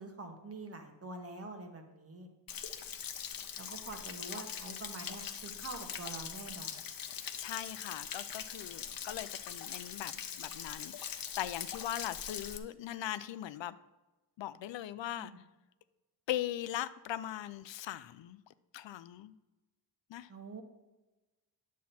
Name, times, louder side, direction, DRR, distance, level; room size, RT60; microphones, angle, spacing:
voice 1, 0.0-2.3 3.6-6.8 15.2-15.4 20.3-20.6, right 2 dB, 30° right, 4 dB, 1.2 m, -46 dB
Stream / Splash splatter / Trickle dribble, 2.5-12.6, left 8 dB, 50° left, 0.7 m, -42 dB
voice 2, 7.4-13.8 14.4-15.3 16.3-18.4 18.7-19.3 20.1-20.3, left 13 dB, 85° left, 15 dB, 0.5 m, -40 dB
10.5 x 7.3 x 4.3 m, 1.1 s
wide cardioid pair, 155°, 44 cm